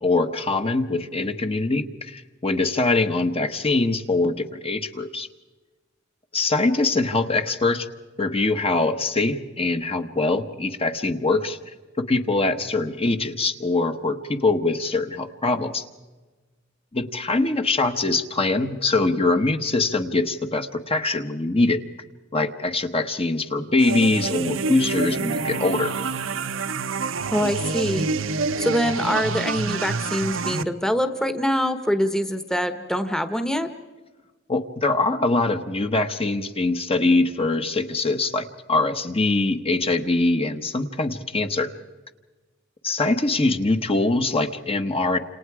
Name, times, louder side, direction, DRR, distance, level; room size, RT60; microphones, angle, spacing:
voice 1, 0.0-5.3 6.3-7.9 8.2-11.6 12.0-15.9 16.9-21.8 22.3-25.9 34.5-41.7 42.8-45.2, left 2 dB, 30° left, 7 dB, 1.2 m, -23 dB
sound 1, 23.8-30.6, right 4 dB, 70° right, 1.0 m, -27 dB
voice 2, 27.3-28.1 28.6-33.7, equal, 5° left, 8 dB, 1.2 m, -24 dB
29.5 x 27.5 x 4.9 m, 1.3 s
head